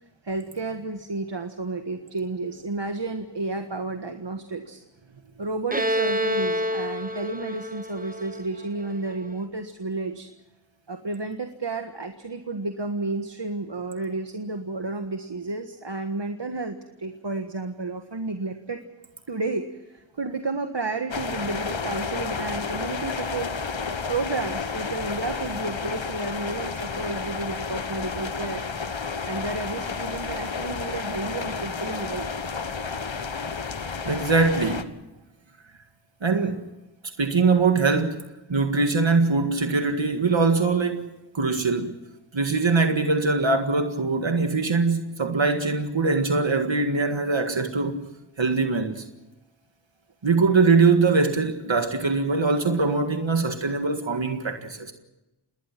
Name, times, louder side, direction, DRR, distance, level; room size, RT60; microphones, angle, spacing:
voice 1, 0.2-4.8 5.4-10.3 10.9-18.8 19.3-23.6 24.1-32.3, right 3 dB, 65° right, 1.6 m, -31 dB
Bowed string instrument, 5.7-9.3, equal, 20° right, 1.4 m, -28 dB
sound 1, 21.1-34.8, left 5 dB, 80° left, 1.4 m, -31 dB
voice 2, 34.1-34.9 36.2-36.7 37.2-38.2 38.5-41.9 42.3-48.0 48.4-49.0 50.2-54.9, right 4 dB, 90° right, 1.9 m, -22 dB
28.5 x 20.0 x 6.0 m
wide cardioid pair, 50°, 45 cm